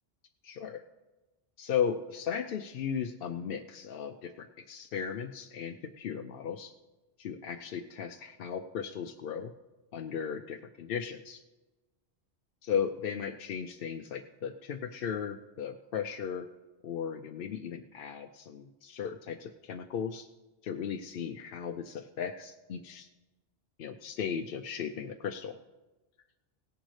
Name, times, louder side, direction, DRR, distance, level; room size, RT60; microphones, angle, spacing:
voice 1, 0.4-0.8 1.6-6.7 7.2-9.5 9.9-11.4 12.6-16.5 16.8-20.3 20.6-23.1 23.8-25.6, left 7 dB, 65° left, 6 dB, 0.7 m, -36 dB
17.5 x 10.5 x 3.2 m, 1.1 s
omnidirectional pair, 1.1 m